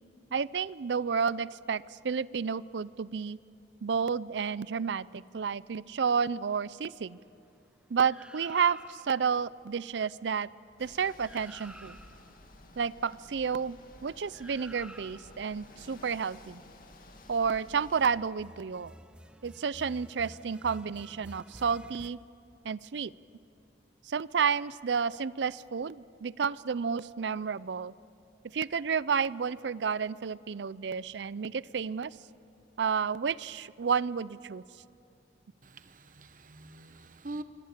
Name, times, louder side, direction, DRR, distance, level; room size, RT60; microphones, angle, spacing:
voice 1, 0.3-3.4 3.8-7.2 7.9-10.5 10.8-12.0 12.8-16.6 17.3-18.9 19.4-22.2 22.6-23.1 24.1-27.9 28.5-32.2 32.8-34.6, right 6 dB, 80° right, 19 dB, 0.5 m, -31 dB
sound 1, 8.1-9.2 10.9-11.0 11.2-12.4 14.3-15.5 17.8-22.1, right 1 dB, 5° right, 0.7 m, -51 dB
sound 2, 10.8-18.1, left 2 dB, 50° left, 2.3 m, -53 dB
voice 2, 35.6-37.4, right 2 dB, 50° right, 10 dB, 1.2 m, -44 dB
25.5 x 24.5 x 7.5 m, 2.6 s
head